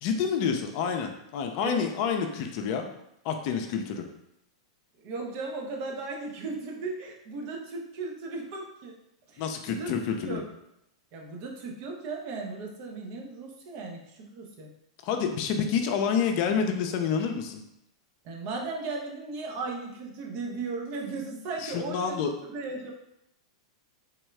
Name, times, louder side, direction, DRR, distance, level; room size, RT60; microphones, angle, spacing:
voice 1, 0.0-2.9 3.2-4.0 9.4-10.4 15.0-17.6 21.6-22.3, left 6 dB, 50° left, 5 dB, 0.4 m, -28 dB
voice 2, 5.0-9.0 9.3-9.9 10.2-10.4 11.1-14.7 18.2-22.9, right 3 dB, 50° right, 0 dB, 0.7 m, -36 dB
3.5 x 2.2 x 3.2 m, 0.80 s
hypercardioid pair, 110°, 3 cm